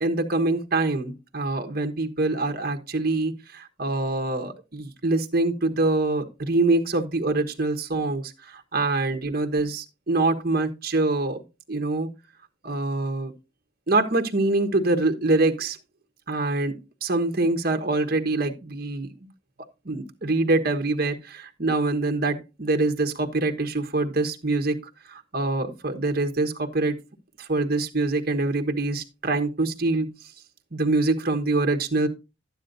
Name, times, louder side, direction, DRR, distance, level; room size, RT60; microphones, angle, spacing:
voice 1, 0.0-11.4 11.7-12.1 12.6-13.3 13.9-15.8 16.3-19.1 19.8-24.8 25.1-27.0 27.4-30.1 30.7-32.1, right 2 dB, 50° right, 4 dB, 1.3 m, -25 dB
12.0 x 9.6 x 2.6 m, 0.28 s
head